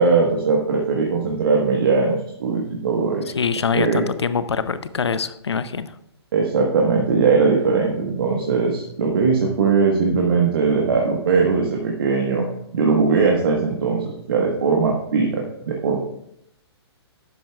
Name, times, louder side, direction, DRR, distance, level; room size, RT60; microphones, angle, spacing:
voice 1, 0.0-3.3 3.7-4.0 6.3-12.5 12.7-16.0, right 4 dB, 55° right, 0 dB, 1.3 m, -20 dB
voice 2, 3.4-5.9, left 6 dB, 75° left, 13 dB, 0.6 m, -24 dB
12.0 x 8.4 x 2.4 m, 0.78 s
figure-of-eight pair, 125°, 14 cm